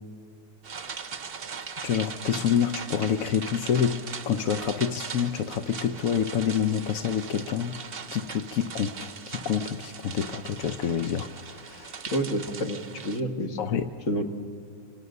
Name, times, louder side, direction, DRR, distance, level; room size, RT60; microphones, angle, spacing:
sound 1, 0.6-13.2, right 6 dB, 40° right, 0.9 m, -39 dB
voice 1, 1.8-7.8 8.1-12.0 13.6-13.9, left 8 dB, 60° left, 8 dB, 1.0 m, -27 dB
voice 2, 12.1-13.6 14.1-14.2, equal, 45° left, 5 dB, 1.9 m, -28 dB
27.0 x 25.5 x 6.6 m, 2.6 s
omnidirectional pair, 2.0 m